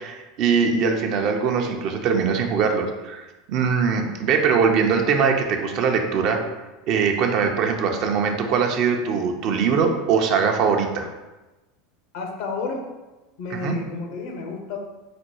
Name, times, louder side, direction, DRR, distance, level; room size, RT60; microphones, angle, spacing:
voice 1, 0.0-6.4 6.9-11.1 13.5-13.8, right 6 dB, 55° right, 3 dB, 0.7 m, -22 dB
voice 2, 12.1-12.9 13.4-14.8, left 4 dB, 70° left, 3 dB, 0.9 m, -31 dB
5.1 x 2.2 x 4.5 m, 1.1 s
hypercardioid pair, 95°, 0 cm